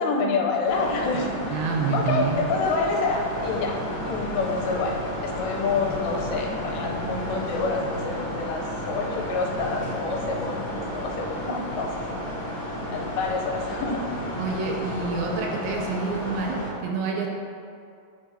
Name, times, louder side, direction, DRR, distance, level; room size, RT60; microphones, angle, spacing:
voice 1, 0.0-1.6 1.9-3.7 4.0-12.5 12.9-14.2, left 4 dB, 85° left, 0 dB, 2.8 m, -28 dB
sound 1, 0.6-16.7, equal, 70° left, 1.4 m, -32 dB
voice 2, 1.5-2.5 14.4-17.3, right 5 dB, 80° right, 0 dB, 2.7 m, -27 dB
9.4 x 4.9 x 2.7 m, 2.4 s
omnidirectional pair, 5.1 m